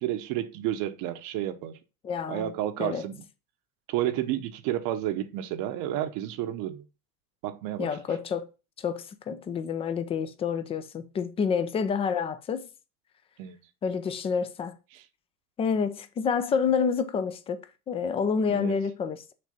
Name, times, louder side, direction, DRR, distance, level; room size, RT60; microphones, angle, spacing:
voice 1, 0.0-1.8 2.3-3.2 3.9-6.8 7.4-7.9 13.4-13.6 14.9-15.0 18.5-18.8, right 12 dB, 45° right, 0.8 m, -31 dB
voice 2, 2.0-2.5 2.8-3.0 7.8-8.5 8.8-12.7 13.8-14.7 15.6-17.6 17.9-19.3, left 6 dB, 15° left, 0.3 m, -28 dB
6.6 x 3.3 x 5.2 m
hypercardioid pair, 100°, 45 cm